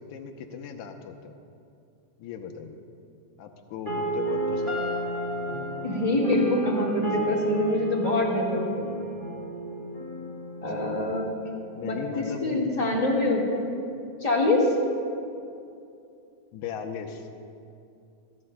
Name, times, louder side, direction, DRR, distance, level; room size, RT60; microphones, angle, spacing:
voice 1, 0.1-1.4 2.2-2.8 3.4-5.1 7.2-7.5 11.8-12.6 16.5-17.3, left 7 dB, 85° left, 4 dB, 2.2 m, -37 dB
sound 1, 3.9-11.9, right 2 dB, 20° right, 2.6 m, -32 dB
voice 2, 5.8-8.9 10.6-11.3 11.8-13.7 14.2-14.7, left 2 dB, 20° left, -4 dB, 1.1 m, -25 dB
28.0 x 11.5 x 2.2 m, 2.6 s
omnidirectional pair, 3.4 m